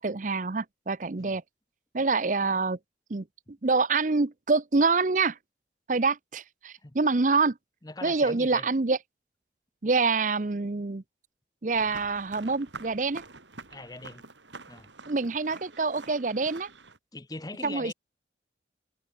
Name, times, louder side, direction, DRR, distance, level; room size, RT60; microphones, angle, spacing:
voice 1, 0.0-1.4 1.9-2.8 3.1-3.2 3.6-5.4 5.9-7.6 8.0-9.0 9.8-11.0 11.6-13.2 15.1-16.7 17.6-17.9, right 4 dB, 45° right, 0.7 m, -26 dB
voice 2, 7.8-8.7 13.7-14.3 14.7-14.9 17.1-17.9, left 2 dB, 20° left, 0.8 m, -41 dB
sound 1, 11.7-17.0, right 3 dB, 85° right, 4.2 m, -47 dB
head